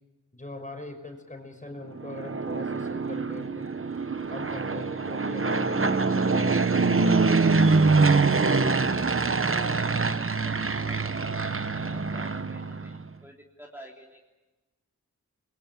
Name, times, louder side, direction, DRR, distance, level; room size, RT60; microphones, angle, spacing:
voice 1, 0.3-3.7 4.3-8.0, left 1 dB, 25° left, 5 dB, 5.5 m, -41 dB
Fixed-wing aircraft airplane, 1.9-13.0, right 4 dB, 45° right, 1.0 m, -24 dB
voice 2, 9.4-14.2, equal, 5° right, -1 dB, 3.4 m, -50 dB
29.5 x 22.0 x 7.3 m, 1.1 s
wide cardioid pair, 70°, 31 cm